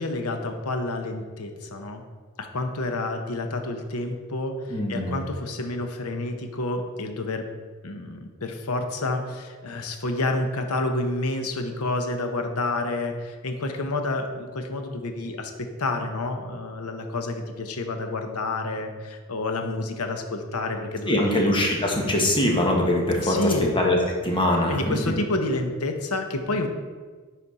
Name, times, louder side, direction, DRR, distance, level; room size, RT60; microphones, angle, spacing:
voice 1, 0.0-2.0 2.4-7.5 7.8-21.5 23.2-23.7 24.7-26.7, left 2 dB, 75° left, 5 dB, 0.9 m, -29 dB
voice 2, 4.7-5.2 21.1-24.0 24.2-25.1, left 1 dB, 20° left, 0 dB, 1.3 m, -23 dB
10.0 x 4.2 x 4.1 m, 1.5 s
head